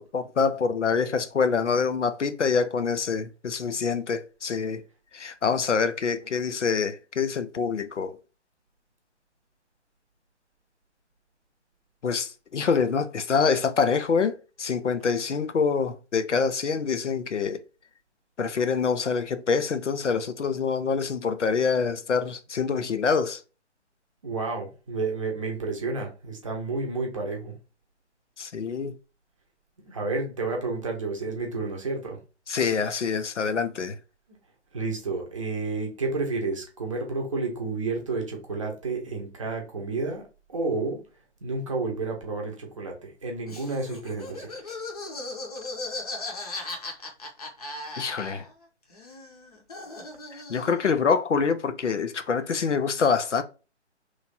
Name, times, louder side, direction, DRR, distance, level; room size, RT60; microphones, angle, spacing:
voice 1, 0.0-4.8 5.1-8.2 12.0-17.6 18.4-23.4 28.4-28.9 32.5-34.0 48.0-48.4 50.5-53.4, left 5 dB, 80° left, 0.5 m, -26 dB
voice 2, 24.2-27.5 29.9-32.2 34.7-40.2 40.5-41.0 41.4-44.8, right 3 dB, 30° right, 0.7 m, -31 dB
Laughter, 43.5-48.6 48.9-50.9, left 2 dB, 35° left, 0.7 m, -37 dB
3.0 x 2.4 x 4.1 m
figure-of-eight pair, 140°, 35 cm